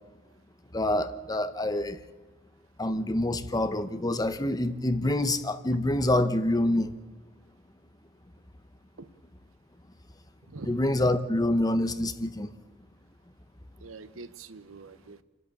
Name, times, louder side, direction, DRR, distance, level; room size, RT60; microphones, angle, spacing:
voice 1, 0.7-2.0 2.8-6.9 10.7-12.5, left 1 dB, 20° left, 11 dB, 1.0 m, -26 dB
voice 2, 10.5-10.8 13.8-15.2, right 3 dB, 75° right, 14 dB, 0.9 m, -44 dB
28.5 x 11.0 x 8.5 m, 1.4 s
head